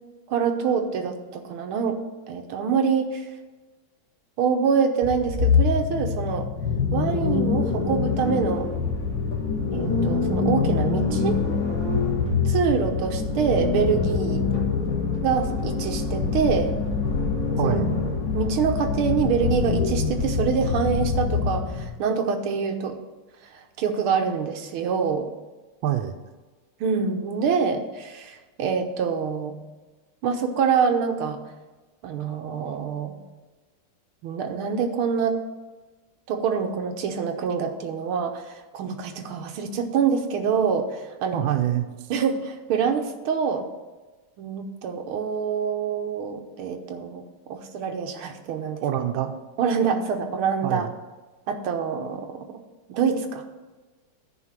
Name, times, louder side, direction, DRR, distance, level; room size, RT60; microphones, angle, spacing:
voice 1, 0.3-2.0 2.3-3.3 4.4-6.4 6.9-8.7 9.7-11.4 12.5-14.4 15.2-16.8 17.6-17.8 18.3-23.0 23.5-25.3 26.8-29.6 30.2-31.4 32.0-33.1 34.2-35.4 36.3-41.4 42.1-43.6 44.4-48.8 49.6-50.9 51.5-52.6 52.9-53.4, right 6 dB, 90° right, 4 dB, 1.8 m, -25 dB
sound 1, 5.0-21.9, left 5 dB, 60° left, 2.4 m, -25 dB
voice 2, 17.6-17.9 25.8-26.2 41.3-41.9 48.8-49.3 50.6-50.9, right 11 dB, 75° right, 6 dB, 1.5 m, -25 dB
9.9 x 5.2 x 7.4 m, 1.3 s
omnidirectional pair, 2.3 m